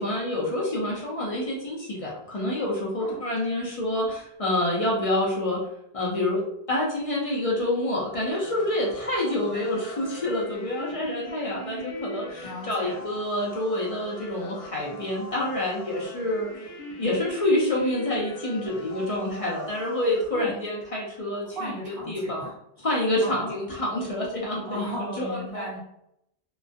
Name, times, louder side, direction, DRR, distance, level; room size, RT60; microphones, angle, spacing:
voice 1, 0.0-5.6 5.9-16.7 17.0-21.7 22.1-22.5 22.8-24.8 25.2-25.7, left 1 dB, 45° left, -4 dB, 0.5 m, -27 dB
sound 1, 8.3-20.2, left 1 dB, 90° left, 0.9 m, -41 dB
voice 2, 12.4-13.0 20.3-20.5 21.4-22.5 23.2-23.5 24.6-25.8, equal, 35° right, -6 dB, 1.1 m, -35 dB
2.3 x 2.2 x 2.5 m, 0.78 s
omnidirectional pair, 1.1 m